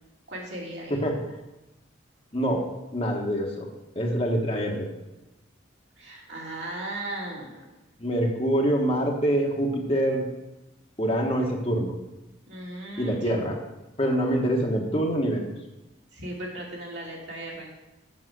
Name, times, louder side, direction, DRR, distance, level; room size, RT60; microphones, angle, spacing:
voice 1, 0.3-1.1 6.0-7.7 12.5-13.4 16.1-17.7, right 1 dB, 65° right, -3 dB, 2.8 m, -37 dB
voice 2, 2.3-2.6 2.9-3.7 3.9-4.9 8.0-10.2 11.0-11.9 13.0-13.6 14.0-15.4, equal, 30° left, 0 dB, 1.3 m, -25 dB
7.4 x 7.3 x 6.2 m, 1.0 s
head